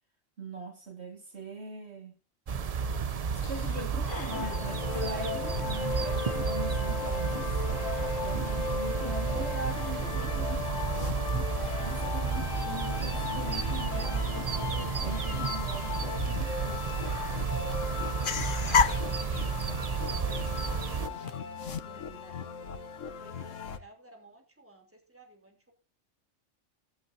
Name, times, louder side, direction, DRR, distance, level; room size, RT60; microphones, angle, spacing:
voice 1, 0.4-2.1 3.5-7.8 8.2-10.7 11.8-16.9, right 2 dB, 60° right, 2.3 m, -41 dB
sound 1, 2.5-21.1, right 6 dB, 40° right, 0.6 m, -32 dB
sound 2, 3.3-21.4, left 7 dB, 50° left, 0.9 m, -38 dB
sound 3, 4.3-23.8, left 6 dB, 90° left, 1.4 m, -37 dB
voice 2, 12.0-13.4 18.8-22.9 23.2-25.7, right 1 dB, 10° right, 3.4 m, -56 dB
15.0 x 12.5 x 2.7 m
omnidirectional pair, 1.3 m